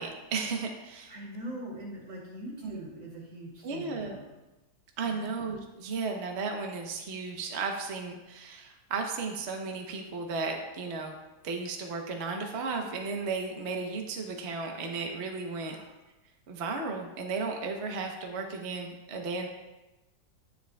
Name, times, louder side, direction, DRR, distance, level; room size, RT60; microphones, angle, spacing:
voice 1, 0.0-1.1 2.6-2.7 3.6-4.2 5.0-11.1 11.4-15.8 16.5-19.5, right 4 dB, 45° right, 2 dB, 1.0 m, -34 dB
voice 2, 1.1-4.2 5.0-5.3 15.6-15.9, right 1 dB, 80° right, -4 dB, 3.3 m, -42 dB
10.5 x 9.6 x 2.3 m, 1.0 s
omnidirectional pair, 2.0 m